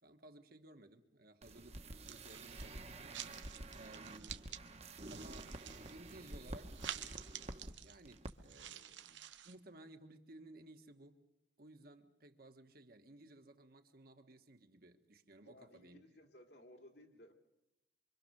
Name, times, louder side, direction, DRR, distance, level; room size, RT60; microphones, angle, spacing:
voice 1, 0.0-4.5 5.1-5.5 5.9-6.8 7.8-11.2 11.6-16.0, right 1 dB, 55° right, 6 dB, 1.4 m, -58 dB
sound 1, 1.4-7.7 8.0-8.3 8.6-8.7, right 2 dB, 35° right, 1.1 m, -49 dB
sound 2, 2.1-2.7 3.1-4.6 5.0-9.6, right 10 dB, 90° right, 1.2 m, -50 dB
voice 2, 15.4-17.3, left 1 dB, 60° left, 4 dB, 2.5 m, -59 dB
25.0 x 25.0 x 6.5 m, 0.89 s
head